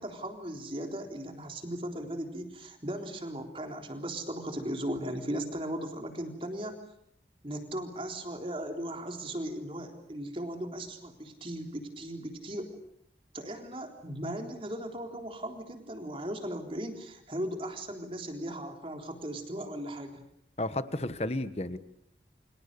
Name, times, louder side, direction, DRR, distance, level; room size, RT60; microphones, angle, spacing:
voice 1, 0.0-6.8 7.4-12.7 13.3-20.2, right 1 dB, 30° right, 4 dB, 3.8 m, -37 dB
voice 2, 20.6-21.8, left 1 dB, 35° left, 12 dB, 1.3 m, -32 dB
30.0 x 26.0 x 6.9 m, 0.71 s
head